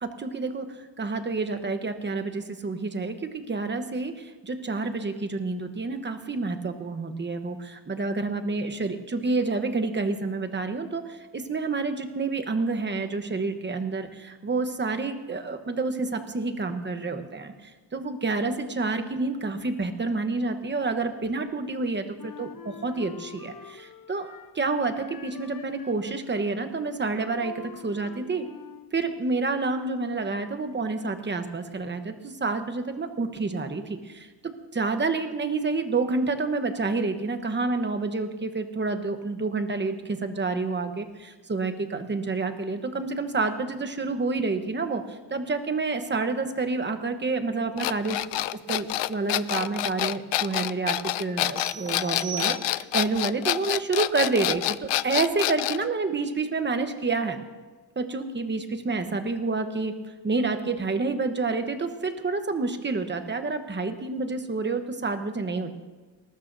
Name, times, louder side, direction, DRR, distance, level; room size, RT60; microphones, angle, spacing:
voice 1, 0.0-24.3 24.5-28.4 28.9-48.2 48.7-57.4 58.0-59.9 60.2-65.7, right 3 dB, 25° right, 7 dB, 1.0 m, -29 dB
Wind instrument woodwind instrument, 22.2-24.6 24.9-29.0, left 8 dB, 50° left, 0.8 m, -46 dB
sound 1, 47.8-55.8, left 15 dB, 80° left, 0.5 m, -27 dB
sound 2, 51.6-53.1, right 7 dB, 5° left, 3.7 m, -39 dB
19.5 x 19.0 x 2.7 m, 1.3 s
wide cardioid pair, 155°, 43 cm